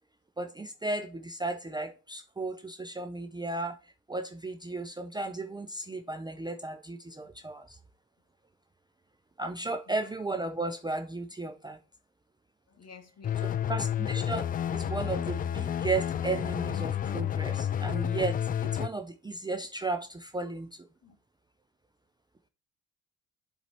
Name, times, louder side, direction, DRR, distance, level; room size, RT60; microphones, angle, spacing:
voice 1, 0.4-3.8 4.1-7.8 9.4-11.8 13.7-20.9, right 3 dB, 10° right, 0.7 m, -34 dB
voice 2, 9.6-10.0 12.7-13.7 21.0-21.2, left 5 dB, 40° left, 1.9 m, -53 dB
sound 1, 13.2-18.9, left 9 dB, 25° left, 0.3 m, -30 dB
7.9 x 4.1 x 4.5 m
figure-of-eight pair, 50°, 39 cm